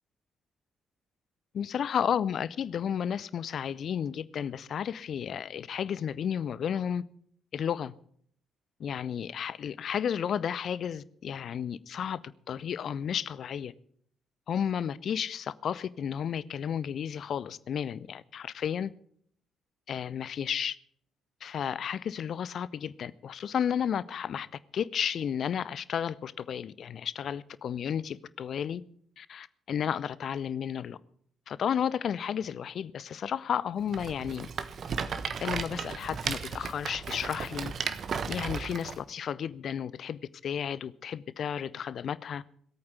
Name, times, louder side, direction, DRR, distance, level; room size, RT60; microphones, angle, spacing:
voice 1, 1.5-7.0 7.5-7.9 8.8-12.2 12.5-13.7 14.5-18.9 19.9-20.8 21.4-24.5 24.7-28.8 29.2-31.0 31.5-34.5 35.4-37.7 38.3-42.4, left 8 dB, 50° left, 0.6 m, -32 dB
Rattle, 33.9-39.0, right 6 dB, 45° right, 1.1 m, -35 dB
18.0 x 8.7 x 8.0 m
figure-of-eight pair, 45°, 0 cm